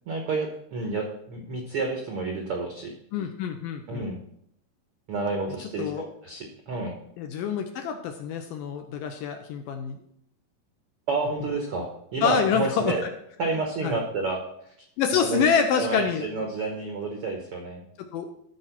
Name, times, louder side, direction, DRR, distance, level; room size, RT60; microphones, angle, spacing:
voice 1, 0.1-2.9 3.9-4.2 5.1-5.9 6.2-6.9 11.1-13.0 13.4-14.4 15.2-15.4 15.8-17.8, right 3 dB, 80° right, 1 dB, 1.2 m, -30 dB
voice 2, 3.1-4.1 5.8-6.1 7.2-10.0 12.2-13.1 13.8-14.0 15.0-16.3 18.0-18.3, left 6 dB, 75° left, 5 dB, 2.1 m, -26 dB
13.5 x 4.6 x 5.9 m, 0.72 s
omnidirectional pair, 4.5 m